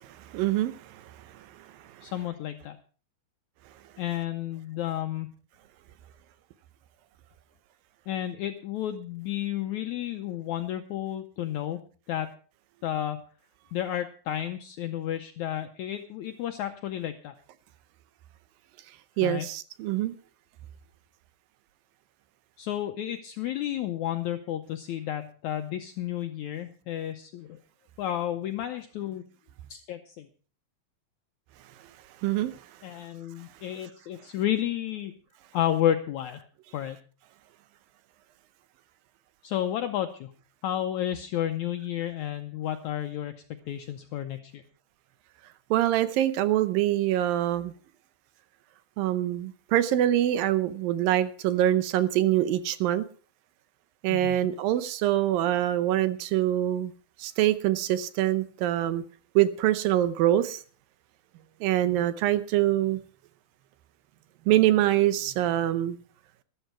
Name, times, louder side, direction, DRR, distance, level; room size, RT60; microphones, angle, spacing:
voice 1, 0.3-0.8 19.2-20.1 32.2-32.5 45.7-47.7 49.0-53.1 54.0-56.9 57.2-59.0 59.4-60.6 61.6-63.0 64.5-66.0, right 13 dB, 80° right, 13 dB, 2.4 m, -24 dB
voice 2, 2.0-2.8 4.0-5.3 8.1-11.8 12.1-12.3 12.8-13.2 13.7-17.3 19.2-19.5 22.6-27.6 28.0-29.2 29.7-30.3 32.8-35.1 35.5-36.4 36.7-37.0 39.4-40.3 40.6-43.3 43.7-44.6 54.1-54.4, left 11 dB, 80° left, 6 dB, 1.7 m, -31 dB
13.5 x 12.5 x 4.5 m, 0.41 s
omnidirectional pair, 4.2 m